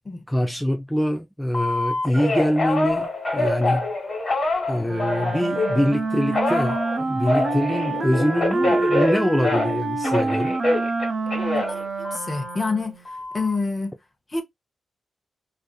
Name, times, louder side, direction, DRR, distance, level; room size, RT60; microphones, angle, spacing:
voice 1, 0.3-3.9 4.7-10.6, equal, 5° left, 0.4 m, -24 dB
Telephone, 1.5-5.9 6.3-9.8 10.0-12.5 13.0-13.6, left 2 dB, 50° left, 1.5 m, -25 dB
Wind instrument woodwind instrument, 4.8-13.1, right 3 dB, 50° right, 0.6 m, -27 dB
voice 2, 11.3-12.9 13.3-14.0 14.3-14.4, left 3 dB, 30° left, 0.8 m, -28 dB
2.5 x 2.4 x 2.3 m
cardioid pair, 70°, 0 cm